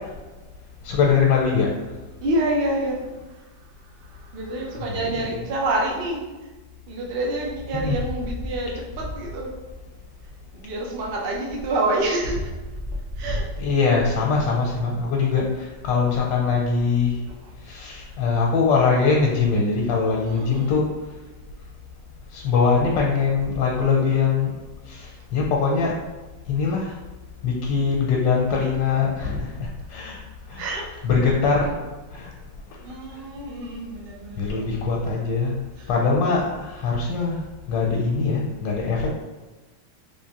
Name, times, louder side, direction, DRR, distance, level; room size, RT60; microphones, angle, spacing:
voice 1, 0.8-1.7 4.9-5.0 7.8-8.0 13.6-17.2 17.7-20.8 22.3-24.5 24.9-26.0 26.5-26.9 27.4-30.2 30.5-30.6 31.0-31.7 32.1-32.3 34.4-35.6 35.9-37.4 37.7-39.1, left 5 dB, 85° left, -2 dB, 1.3 m, -22 dB
voice 2, 2.2-3.0 3.3-3.4 4.0-6.2 6.9-9.5 10.5-12.4 13.1-13.5 17.3-17.5 20.2-20.8 30.6-31.1 32.8-34.5 35.8-35.9, right 1 dB, 80° right, -1 dB, 0.5 m, -27 dB
3.6 x 3.1 x 2.8 m, 1.2 s
omnidirectional pair, 2.0 m